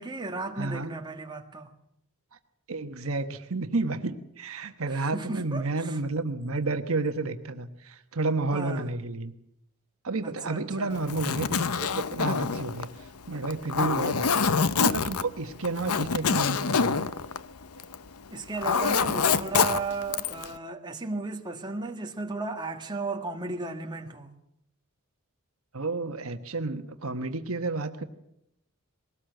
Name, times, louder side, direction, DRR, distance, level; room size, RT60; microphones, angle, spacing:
voice 1, 0.0-1.7 4.9-6.0 8.5-8.9 10.2-11.0 18.3-24.3, right 3 dB, 20° right, 1.6 m, -35 dB
voice 2, 0.6-0.9 2.7-9.3 10.0-12.9 13.3-17.1 25.7-28.0, right 3 dB, 70° right, 1.3 m, -31 dB
Zipper (clothing), 11.0-18.1 18.4-20.5, left 5 dB, 90° left, 0.8 m, -26 dB
21.5 x 18.5 x 7.9 m
head